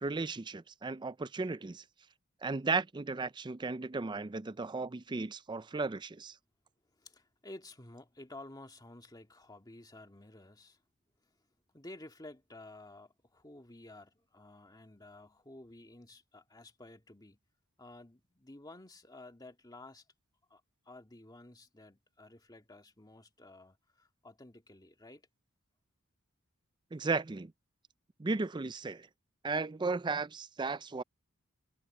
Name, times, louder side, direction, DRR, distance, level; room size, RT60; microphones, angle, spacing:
voice 1, 0.0-1.8 2.4-6.3 26.9-27.5 28.2-29.1 29.4-31.0, right 3 dB, 20° right, 0.4 m, -35 dB
voice 2, 6.9-10.8 11.2-11.3 11.7-17.4 17.8-20.1 20.5-25.3, left 2 dB, 20° left, 2.0 m, -52 dB
head